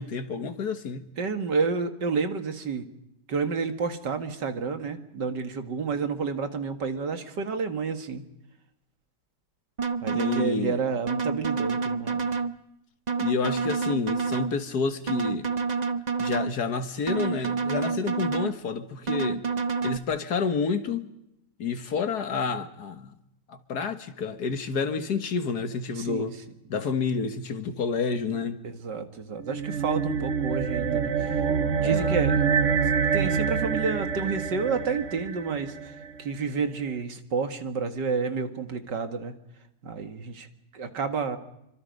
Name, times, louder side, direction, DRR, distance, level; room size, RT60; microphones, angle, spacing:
voice 1, 0.0-1.0 10.1-10.8 13.2-15.5 16.2-19.5 19.8-21.1 21.6-23.1 23.5-26.4 26.7-28.6 31.8-32.1, left 5 dB, 65° left, 1.9 m, -29 dB
voice 2, 1.2-2.8 3.3-8.2 10.0-12.2 26.0-26.3 26.7-26.8 28.6-31.3 31.8-32.5 33.1-35.7 36.2-39.3 39.8-40.5 40.7-41.4, right 5 dB, 75° right, 2.4 m, -30 dB
sound 1, 9.8-10.5 11.1-12.5 13.1-14.5 15.1-16.5 17.1-18.5 19.1-20.0, right 5 dB, 35° right, 0.8 m, -28 dB
sound 2, 29.4-36.1, right 6 dB, 50° right, 1.2 m, -26 dB
27.0 x 25.0 x 5.3 m
omnidirectional pair, 1.9 m